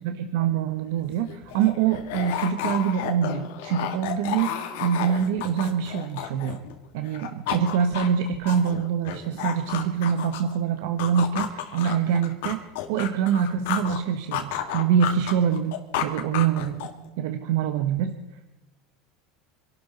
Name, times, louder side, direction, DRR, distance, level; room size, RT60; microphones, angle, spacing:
voice 1, 0.0-6.6 6.9-12.6 12.9-18.2, right 8 dB, 75° right, 7 dB, 1.2 m, -25 dB
sound 1, 0.9-1.0 1.2-6.8 7.1-10.6 11.0-14.0 14.3-17.1, left 10 dB, 80° left, 2.0 m, -32 dB
26.0 x 12.0 x 4.3 m, 1.0 s
supercardioid pair, 125°, 0 cm